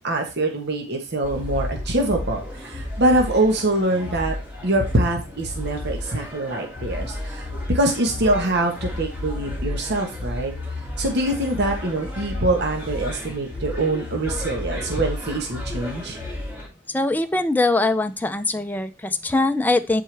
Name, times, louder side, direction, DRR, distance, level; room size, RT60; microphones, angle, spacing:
voice 1, 0.0-4.3 4.6-10.5 11.0-16.2, right 1 dB, 60° right, 2 dB, 1.3 m, -24 dB
sound 1, 1.2-16.7, left 1 dB, 10° right, 2.4 m, -32 dB
voice 2, 16.9-20.0, left 2 dB, 10° left, 8 dB, 0.5 m, -22 dB
10.5 x 4.5 x 3.4 m, 0.30 s
head